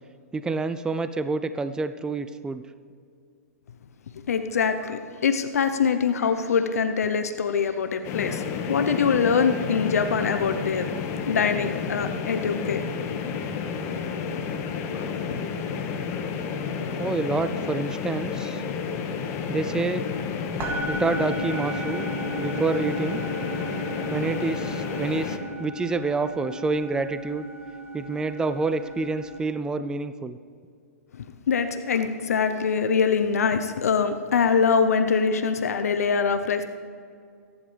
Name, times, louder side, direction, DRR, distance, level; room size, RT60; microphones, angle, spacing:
voice 1, 0.3-2.6 17.0-18.6 19.5-20.0 20.9-22.1 22.4-23.2 24.1-27.5 27.9-30.4, right 3 dB, 10° right, 11 dB, 0.5 m, -28 dB
voice 2, 4.3-10.9 11.3-12.8 13.3-13.4 13.9-14.0 14.9-15.4 31.5-36.6, left 6 dB, 75° left, 8 dB, 0.9 m, -24 dB
sound 1, 8.0-25.4, left 6 dB, 35° left, 1.7 m, -31 dB
sound 2, 18.7-18.9 19.1-20.2 20.6-29.4, right 2 dB, 30° right, 2.6 m, -35 dB
24.5 x 11.0 x 3.5 m, 2.3 s
hypercardioid pair, 120°, 8 cm